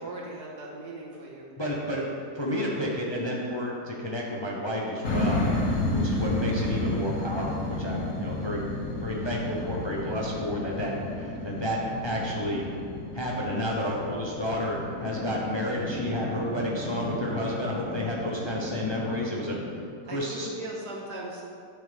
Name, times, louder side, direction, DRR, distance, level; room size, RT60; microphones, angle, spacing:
voice 1, 0.0-1.5 2.0-2.3 20.1-21.4, right 1 dB, 80° right, -3 dB, 2.0 m, -39 dB
voice 2, 1.6-2.0 2.3-5.5 5.9-8.6 9.0-12.6 13.1-19.5 20.1-20.5, equal, 20° left, -3 dB, 0.8 m, -31 dB
sound 1, 5.0-19.8, left 2 dB, 55° left, 1.6 m, -32 dB
11.5 x 6.6 x 3.5 m, 2.3 s
omnidirectional pair, 1.7 m